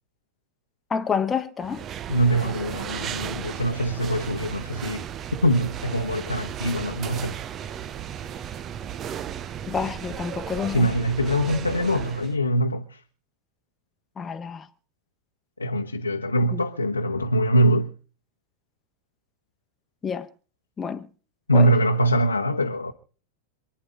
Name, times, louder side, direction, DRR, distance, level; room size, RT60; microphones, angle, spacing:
voice 1, 0.9-1.8 9.7-10.9 14.2-14.7 16.5-16.6 20.0-20.3 20.8-21.1 21.5-21.7, left 6 dB, 15° left, 1.1 m, -28 dB
sound 1, 1.6-12.3, right 9 dB, 30° right, 0.7 m, -35 dB
voice 2, 2.1-5.1 5.4-7.4 10.7-13.0 15.6-17.9 21.5-22.9, right 1 dB, 80° left, 1.1 m, -23 dB
27.5 x 10.0 x 3.5 m
figure-of-eight pair, 90°, 0 cm